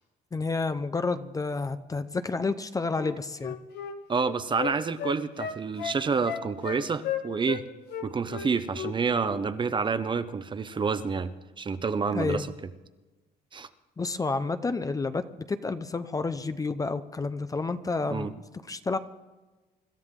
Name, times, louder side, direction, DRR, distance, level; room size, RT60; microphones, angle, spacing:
voice 1, 0.3-3.6 12.1-12.5 14.0-15.2 15.5-19.0, left 3 dB, 20° left, 11 dB, 0.7 m, -30 dB
Wind instrument woodwind instrument, 3.0-7.6 7.9-9.0 9.2-9.4, left 9 dB, 75° left, 1.5 m, -35 dB
voice 2, 4.1-7.7 8.0-11.3 11.6-12.5 13.5-13.7 18.1-18.3, right 5 dB, 30° right, 11 dB, 0.8 m, -28 dB
25.5 x 13.0 x 3.8 m, 1.2 s
cardioid pair, 110°, 17 cm